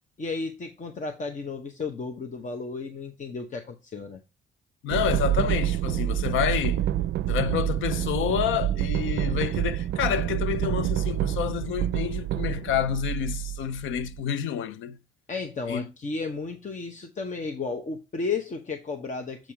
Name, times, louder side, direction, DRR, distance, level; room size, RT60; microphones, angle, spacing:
voice 1, 0.2-4.2 15.3-19.5, left 4 dB, 40° left, 1.1 m, -33 dB
voice 2, 4.8-6.8 7.3-15.0 15.7-15.9, left 9 dB, 80° left, 0.6 m, -28 dB
sound 1, 4.9-14.2, right 12 dB, 65° right, 0.4 m, -27 dB
7.5 x 3.6 x 4.4 m
cardioid pair, 90°, 20 cm